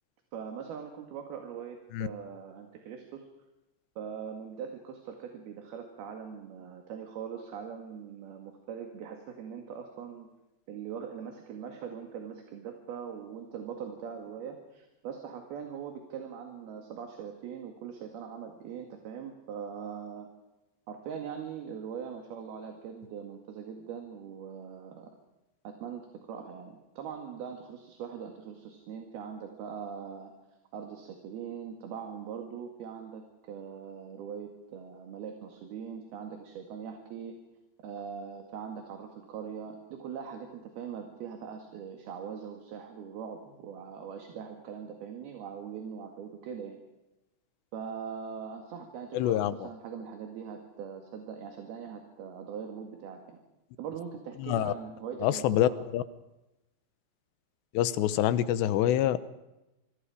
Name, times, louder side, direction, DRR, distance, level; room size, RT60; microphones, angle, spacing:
voice 1, 0.3-3.2 4.0-10.3 10.7-20.3 20.9-25.1 25.6-30.3 30.7-37.4 37.8-46.8 47.7-53.4 53.8-55.8, right 7 dB, 65° right, 3 dB, 3.8 m, -41 dB
voice 2, 49.1-49.5 54.4-54.7 55.2-56.0 57.7-59.2, left 12 dB, 90° left, 13 dB, 3.1 m, -26 dB
27.0 x 24.5 x 5.0 m, 0.97 s
omnidirectional pair, 4.9 m